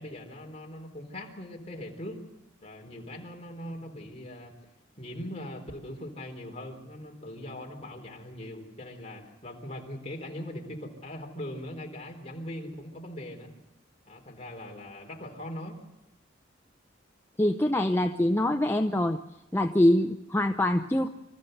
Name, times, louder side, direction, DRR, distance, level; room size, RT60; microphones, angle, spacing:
voice 1, 0.0-2.3 2.6-4.6 5.0-13.5 14.1-15.9, left 1 dB, 35° left, 1 dB, 3.8 m, -40 dB
voice 2, 17.4-19.2 19.5-21.1, left 1 dB, 10° left, 5 dB, 0.7 m, -24 dB
26.0 x 15.0 x 8.0 m, 0.95 s
head